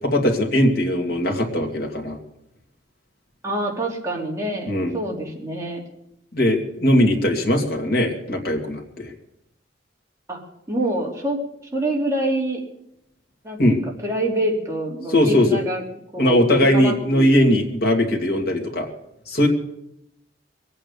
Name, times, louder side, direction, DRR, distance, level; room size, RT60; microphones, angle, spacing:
voice 1, 0.0-2.2 4.7-4.9 6.3-9.1 13.6-13.8 15.1-15.6 16.2-18.9 19.3-19.5, left 1 dB, 55° left, 2 dB, 2.5 m, -19 dB
voice 2, 3.4-5.8 10.3-10.4 10.7-11.4 11.7-12.6 13.4-15.8 16.1-16.5 16.7-17.3, right 1 dB, 15° right, -2 dB, 3.2 m, -26 dB
22.0 x 8.9 x 6.9 m, 0.81 s
head